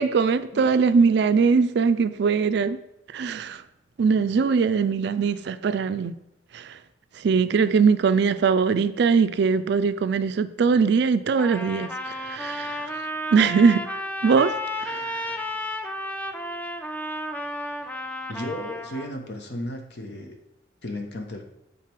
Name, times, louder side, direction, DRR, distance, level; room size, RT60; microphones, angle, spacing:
voice 1, 0.0-2.8 3.1-3.6 4.0-6.2 6.5-6.7 7.2-12.9 13.3-13.8 14.2-14.5 14.8-15.2, right 5 dB, 60° right, 0.3 m, -21 dB
Trumpet, 11.4-19.1, left 1 dB, 10° left, 0.4 m, -32 dB
voice 2, 18.3-20.4 20.8-21.5, left 1 dB, 60° left, 1.0 m, -34 dB
7.4 x 4.0 x 4.5 m
head